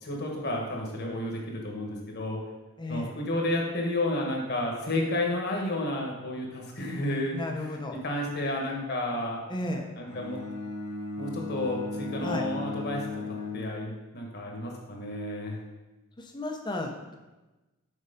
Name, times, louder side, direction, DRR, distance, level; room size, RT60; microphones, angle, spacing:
voice 1, 0.0-2.4 2.9-7.4 8.0-9.4 10.0-10.4 11.2-13.0 13.5-15.6, left 1 dB, 45° left, 0 dB, 1.4 m, -31 dB
voice 2, 2.8-3.2 7.3-8.0 9.5-9.9 12.2-12.5 16.2-17.2, left 2 dB, 20° left, 3 dB, 0.7 m, -34 dB
Bowed string instrument, 10.1-14.3, left 3 dB, 65° left, 1.8 m, -36 dB
6.7 x 4.6 x 5.1 m, 1.1 s
head